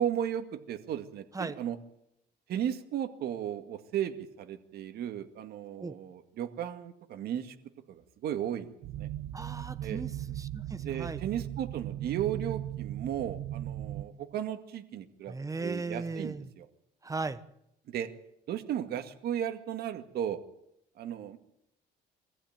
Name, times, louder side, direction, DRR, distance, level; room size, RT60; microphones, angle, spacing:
voice 1, 0.0-1.8 2.5-7.6 7.9-9.1 9.8-10.0 10.8-16.7 17.9-18.1 18.5-20.4 21.0-21.4, right 10 dB, 70° right, 8 dB, 2.1 m, -35 dB
sound 1, 8.8-14.1, right 12 dB, 90° right, 1.0 m, -37 dB
voice 2, 9.3-11.2 15.3-16.5 17.0-17.4, right 3 dB, 20° right, 13 dB, 1.2 m, -37 dB
24.0 x 14.5 x 9.1 m, 0.80 s
cardioid pair, 110°, 17 cm